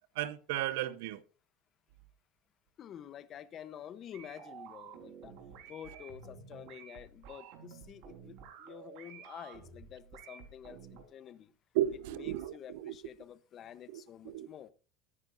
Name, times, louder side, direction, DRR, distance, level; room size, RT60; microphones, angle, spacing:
voice 1, 0.2-1.2 11.7-12.9 13.9-14.5, right 13 dB, 80° right, 0.9 m, -34 dB
voice 2, 2.8-5.3 5.7-10.8 11.1-11.5 12.1-14.7, left 9 dB, 35° left, 0.9 m, -49 dB
sound 1, 4.1-11.0, right 7 dB, 65° right, 4.2 m, -51 dB
23.5 x 9.7 x 2.6 m
supercardioid pair, 150°, 0 cm